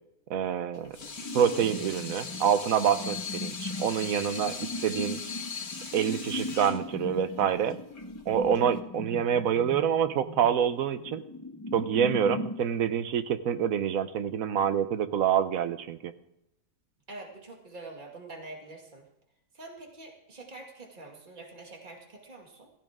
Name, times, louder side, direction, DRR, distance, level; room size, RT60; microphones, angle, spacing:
voice 1, 0.3-1.0 1.3-5.2 5.9-7.8 8.3-11.2 11.7-16.1, right 8 dB, 70° right, 12 dB, 1.2 m, -27 dB
Water tap faucet / Sink (filling or washing), 0.7-8.8, left 5 dB, 75° left, 1.9 m, -40 dB
sound 1, 1.2-12.6, left 1 dB, 20° left, 0.5 m, -38 dB
voice 2, 17.1-19.1 19.5-22.7, right 2 dB, 30° right, 1 dB, 2.4 m, -45 dB
15.5 x 15.5 x 3.7 m, 0.82 s
omnidirectional pair, 1.5 m